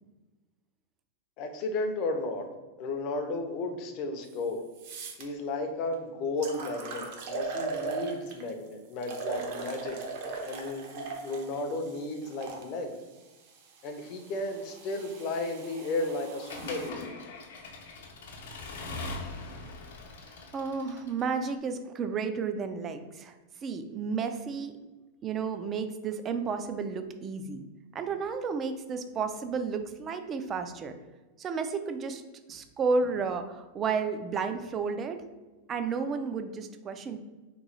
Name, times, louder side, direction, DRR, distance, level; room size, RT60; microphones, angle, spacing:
voice 1, 1.4-2.5 2.8-4.6 5.2-10.0 10.4-13.0 13.8-17.1, left 2 dB, 40° left, 5 dB, 0.5 m, -34 dB
sound 1, 4.3-4.4 4.8-5.2 5.9-6.0 6.4-8.5 9.0-12.6 13.5-16.9, right 4 dB, 50° right, 0.7 m, -39 dB
Accelerating revving vroom / Mechanisms, 16.5-21.4, left 2 dB, 80° left, 0.7 m, -41 dB
voice 2, 20.5-23.3 23.6-24.7 25.2-27.6 27.9-30.9 31.4-32.2 32.5-35.2 35.7-37.2, right 5 dB, 25° right, 8 dB, 0.3 m, -32 dB
3.0 x 2.7 x 3.9 m, 1.2 s
supercardioid pair, 150°, 0 cm